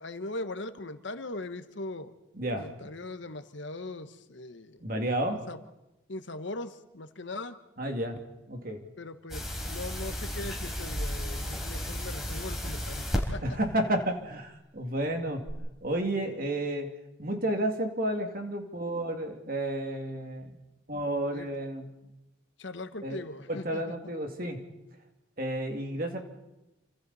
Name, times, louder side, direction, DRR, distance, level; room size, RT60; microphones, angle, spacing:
voice 1, 0.0-2.1 2.5-4.8 5.3-5.6 6.1-7.6 9.0-13.6 21.3-21.5 22.6-24.0, left 2 dB, 65° left, 10 dB, 1.2 m, -40 dB
voice 2, 2.3-2.7 4.8-5.4 7.8-8.2 8.5-8.8 13.4-15.5 15.8-16.9 17.2-20.6 20.9-21.9 23.0-23.2 23.5-24.6 25.4-26.2, right 1 dB, 45° right, 4 dB, 2.4 m, -31 dB
sound 1, 9.3-13.2 15.5-15.6, equal, ahead, 4.0 m, -33 dB
28.5 x 25.5 x 4.2 m, 0.98 s
head